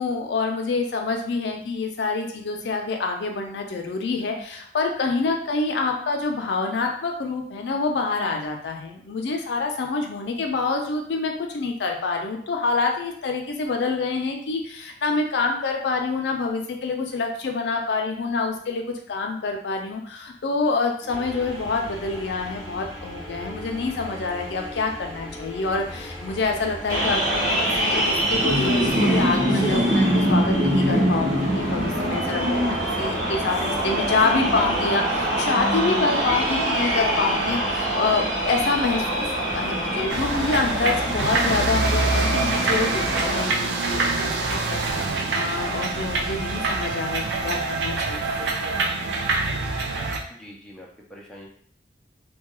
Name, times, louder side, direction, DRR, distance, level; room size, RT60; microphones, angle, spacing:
voice 1, 0.0-48.4, left 4 dB, 75° left, 3 dB, 0.4 m, -27 dB
sound 1, 21.1-34.9, equal, 20° right, 0.9 m, -38 dB
sound 2, 26.9-43.4, right 1 dB, 45° right, 0.9 m, -24 dB
sound 3, 40.1-50.2, right 3 dB, 75° right, 0.4 m, -25 dB
voice 2, 50.3-51.5, equal, 5° left, -3 dB, 0.3 m, -44 dB
2.3 x 2.2 x 2.9 m, 0.63 s
head